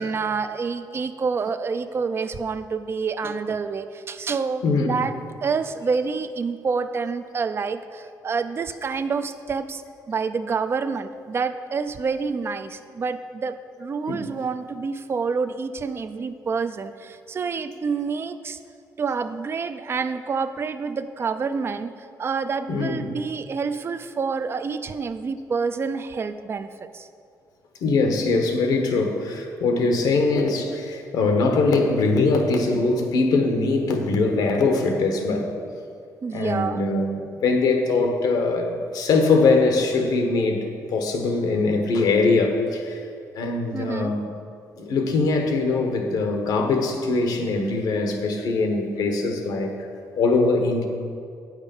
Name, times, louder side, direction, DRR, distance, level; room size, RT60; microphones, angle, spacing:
voice 1, 0.0-5.1 5.4-9.8 10.1-18.6 19.0-21.9 22.2-27.1 36.2-36.8 43.7-44.1, right 5 dB, 35° right, 11 dB, 0.4 m, -28 dB
voice 2, 4.6-5.0 14.1-14.2 22.7-23.1 27.8-35.5 36.3-43.0 43.3-44.3 44.8-49.9 50.2-50.9, left 3 dB, 80° left, 4 dB, 1.1 m, -22 dB
8.6 x 6.5 x 5.3 m, 2.4 s
cardioid pair, 105°, 7 cm